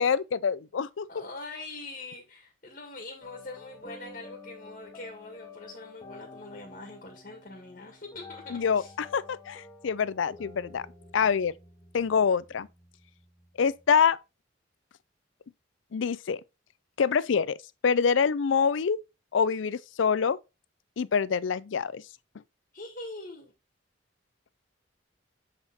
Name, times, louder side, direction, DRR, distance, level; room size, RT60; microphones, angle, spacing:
voice 1, 0.0-1.1 8.5-10.8 11.1-11.5 11.9-12.7 13.6-14.2 15.9-16.4 17.0-17.6 17.8-19.0 19.3-20.4 21.0-22.0, left 6 dB, 75° left, 0.4 m, -25 dB
voice 2, 1.1-8.9 22.7-23.5, left 2 dB, 45° left, 1.8 m, -43 dB
sound 1, 3.2-13.9, left 3 dB, 20° left, 1.4 m, -50 dB
7.7 x 4.4 x 4.1 m
head